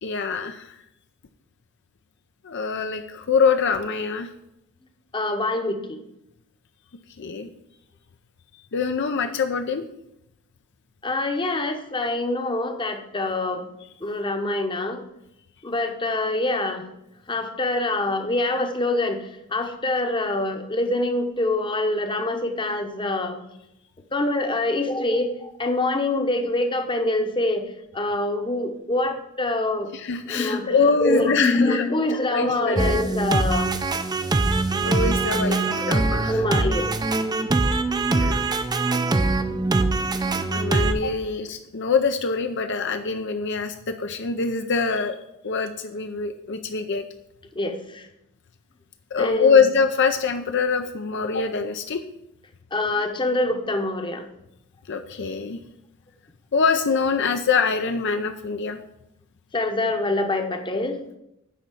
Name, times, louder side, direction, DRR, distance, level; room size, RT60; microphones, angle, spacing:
voice 1, 0.0-0.8 2.4-4.3 7.2-7.5 8.7-9.8 29.9-31.8 32.3-32.8 34.9-36.4 38.1-38.5 40.5-45.1 45.4-47.0 49.1-52.0 54.9-55.6 56.5-58.8, left 5 dB, 55° left, 7 dB, 0.6 m, -24 dB
voice 2, 5.1-6.0 11.0-13.7 14.0-15.0 15.6-16.9 17.3-23.4 24.1-27.6 27.9-29.9 30.2-33.7 35.3-35.9 36.3-36.9 47.5-48.1 49.2-49.6 52.7-54.2 59.5-61.0, left 2 dB, 25° left, 6 dB, 0.9 m, -25 dB
sound 1, 32.8-40.9, right 3 dB, 20° right, 0.5 m, -23 dB
10.0 x 4.0 x 7.5 m, 0.85 s
head